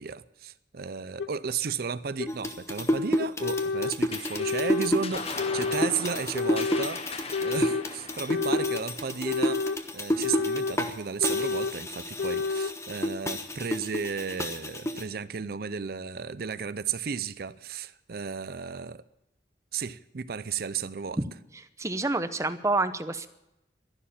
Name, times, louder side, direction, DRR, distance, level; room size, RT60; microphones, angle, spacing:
voice 1, 0.0-19.0 19.7-21.2, right 6 dB, 55° right, 0.5 m, -34 dB
sound 1, 1.2-1.3 2.2-2.3 3.2-4.0 4.4-4.9 5.4-5.9 6.3-6.9 7.3-7.9 8.3-8.8 9.2-9.8 10.2-10.8 11.2-11.8 12.2-12.7, left 4 dB, 80° left, 0.6 m, -29 dB
sound 2, 2.3-10.9 11.2-15.0, left 1 dB, 15° left, 1.1 m, -30 dB
sound 3, 4.1-10.9, left 4 dB, 35° left, 1.0 m, -40 dB
voice 2, 21.8-23.3, right 2 dB, 15° right, 0.7 m, -28 dB
13.0 x 11.5 x 8.6 m
head